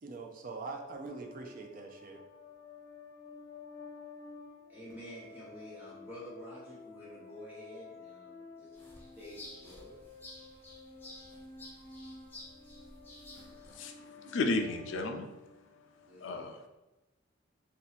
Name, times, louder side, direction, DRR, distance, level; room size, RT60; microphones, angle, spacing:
voice 1, 0.0-2.2, right 3 dB, 45° right, 3 dB, 0.4 m, -43 dB
sound 1, 0.6-16.1, left 4 dB, 85° left, 0.9 m, -52 dB
voice 2, 4.7-10.0 16.1-16.6, equal, 10° right, -9 dB, 1.0 m, -49 dB
Sparrow Bowl, 8.7-13.8, left 1 dB, 10° left, 0.7 m, -52 dB
voice 3, 13.4-15.3 16.2-16.6, left 2 dB, 70° left, 4 dB, 0.4 m, -34 dB
2.7 x 2.3 x 4.0 m, 1.0 s
head